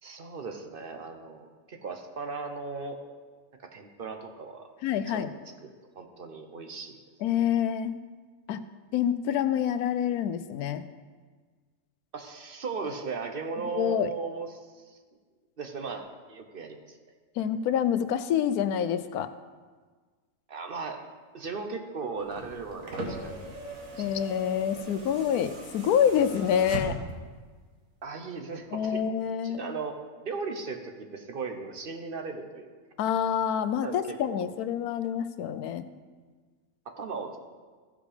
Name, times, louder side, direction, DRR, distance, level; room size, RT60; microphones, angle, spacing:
voice 1, 0.0-3.0 3.6-4.7 5.1-5.3 5.6-7.0 12.1-15.0 15.6-17.0 20.5-21.0 21.3-23.5 23.9-24.1 28.0-29.0 29.4-32.7 33.8-34.5 36.9-37.4, right 4 dB, 45° right, 5 dB, 0.9 m, -37 dB
voice 2, 4.8-5.3 7.2-8.0 8.5-8.6 8.9-10.8 13.7-14.1 17.4-19.3 24.0-27.0 28.7-29.8 33.0-35.9, left 9 dB, 90° left, 12 dB, 1.1 m, -27 dB
sound 1, 22.2-27.3 28.5-28.6, right 2 dB, 65° right, 1.7 m, -39 dB
15.0 x 5.1 x 5.0 m, 1.5 s
omnidirectional pair, 1.5 m